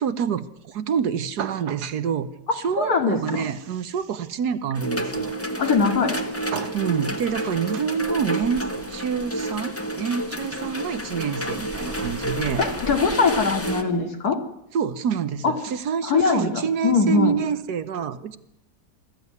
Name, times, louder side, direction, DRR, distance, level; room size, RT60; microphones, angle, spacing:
voice 1, 0.0-2.3 2.5-5.3 6.5-12.6 14.7-18.4, right 7 dB, 70° right, 12 dB, 1.5 m, -27 dB
voice 2, 2.8-3.5 5.6-6.2 12.6-14.4 15.4-15.5 16.0-17.3, left 4 dB, 60° left, 5 dB, 2.8 m, -21 dB
sound 1, 4.7-13.8, right 1 dB, 10° left, 1.5 m, -30 dB
20.5 x 14.5 x 9.6 m, 0.82 s
omnidirectional pair, 1.8 m